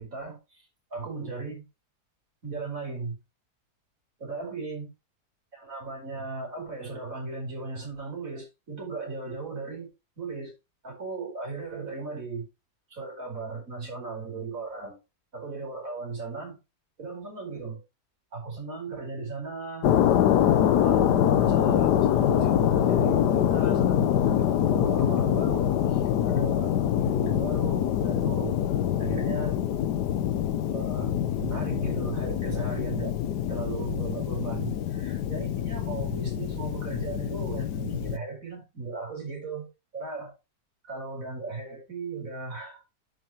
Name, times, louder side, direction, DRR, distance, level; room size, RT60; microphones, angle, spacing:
voice 1, 0.0-1.6 2.4-3.2 4.2-4.9 5.5-9.9 10.2-10.5 10.8-12.5 12.9-15.0 15.3-16.6 17.0-17.8 18.3-19.9 20.5-28.6 29.0-29.6 30.7-33.2 33.5-40.3 40.8-42.8, right 4 dB, 55° right, 5.2 m, -36 dB
sound 1, 19.8-38.2, left 10 dB, 80° left, 1.4 m, -25 dB
10.5 x 6.5 x 3.0 m
omnidirectional pair, 1.7 m